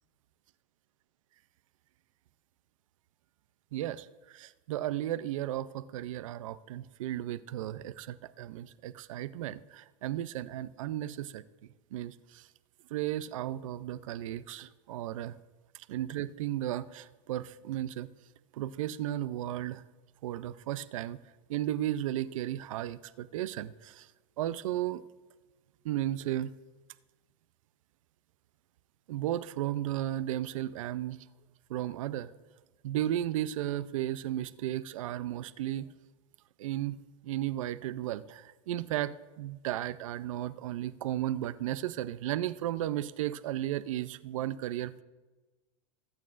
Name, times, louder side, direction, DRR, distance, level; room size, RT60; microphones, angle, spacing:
voice 1, 3.7-11.4 11.9-12.4 12.9-15.3 15.9-18.1 18.5-19.8 20.2-21.2 21.5-24.1 24.4-25.0 25.8-26.5 29.1-31.2 31.7-32.3 32.8-35.9 36.6-37.0 37.2-45.0, right 13 dB, 80° right, 16 dB, 0.5 m, -34 dB
20.0 x 8.5 x 2.5 m, 1.2 s
supercardioid pair, 145°, 17 cm